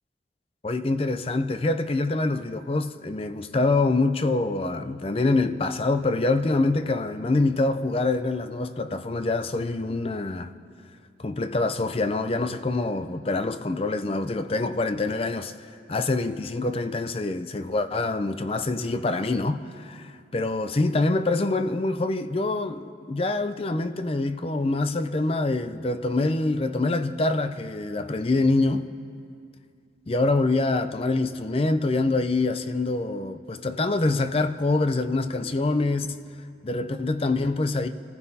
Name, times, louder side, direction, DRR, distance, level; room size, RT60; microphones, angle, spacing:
voice 1, 0.6-10.5 11.2-15.5 15.9-28.9 30.1-36.2 36.6-37.9, left 2 dB, 30° left, 0.5 m, -25 dB
28.5 x 14.5 x 2.8 m
head